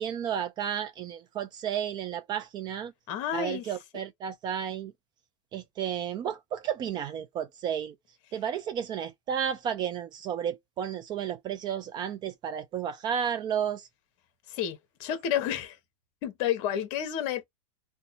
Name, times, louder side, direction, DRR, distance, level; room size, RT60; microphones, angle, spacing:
voice 1, 0.0-2.9 3.3-4.9 5.5-8.0 8.3-13.9, right 9 dB, 25° right, 0.4 m, -32 dB
voice 2, 3.1-3.6 14.5-15.8 16.2-17.4, left 9 dB, 45° left, 1.0 m, -30 dB
2.6 x 2.2 x 4.0 m
supercardioid pair, 135°, 16 cm